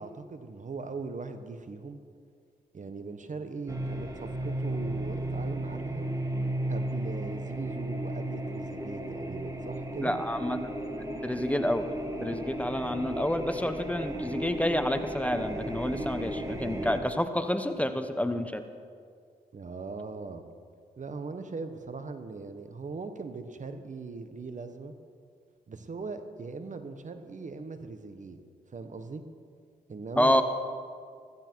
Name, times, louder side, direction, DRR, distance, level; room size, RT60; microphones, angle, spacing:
voice 1, 0.0-2.0 2.7-6.1 6.7-10.1 19.5-20.4 21.0-24.9 25.7-28.4 28.7-29.2 29.9-30.4, right 4 dB, 50° right, 9 dB, 1.2 m, -40 dB
sound 1, 3.7-17.0, right 1 dB, 20° right, 1.8 m, -34 dB
voice 2, 10.0-10.7 11.2-11.9 12.2-18.6 30.2-30.4, left 1 dB, 10° left, 9 dB, 1.0 m, -28 dB
15.5 x 14.5 x 4.6 m, 2.2 s
supercardioid pair, 50°, 17 cm